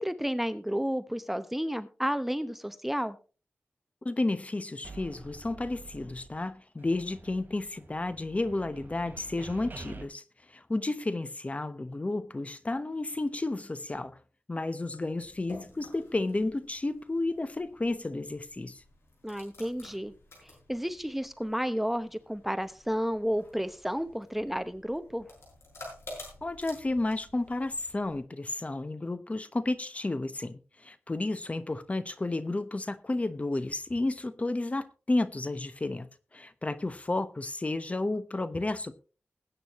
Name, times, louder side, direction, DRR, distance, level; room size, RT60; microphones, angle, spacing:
voice 1, 0.0-3.2 19.2-20.1 20.4-25.3, equal, 5° right, 0.9 m, -32 dB
voice 2, 4.0-10.2 10.5-14.2 14.5-18.8 26.4-38.9, left 2 dB, 30° left, 1.0 m, -32 dB
sound 1, 4.8-6.5 6.8-10.0, right 3 dB, 45° right, 3.1 m, -47 dB
sound 2, 15.1-28.2, left 2 dB, 75° left, 6.8 m, -51 dB
20.5 x 9.0 x 3.1 m
wide cardioid pair, 80°, 4 cm